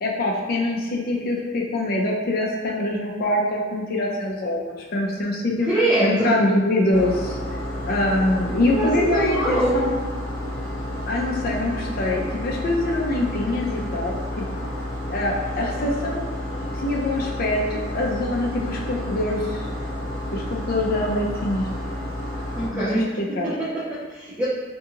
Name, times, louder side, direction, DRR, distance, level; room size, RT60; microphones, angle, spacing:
voice 1, 0.0-5.7 6.0-7.4 7.8-9.9 11.1-14.4 15.1-16.3 16.8-19.6 20.3-21.7 22.7-23.5, left 1 dB, 50° left, -2 dB, 0.4 m, -24 dB
voice 2, 5.7-6.3 8.7-9.9 22.5-24.5, right 1 dB, 10° right, -10 dB, 0.4 m, -23 dB
sound 1, 6.9-22.7, left 1 dB, 20° left, 1.3 m, -30 dB
2.8 x 2.7 x 2.4 m, 1.4 s
head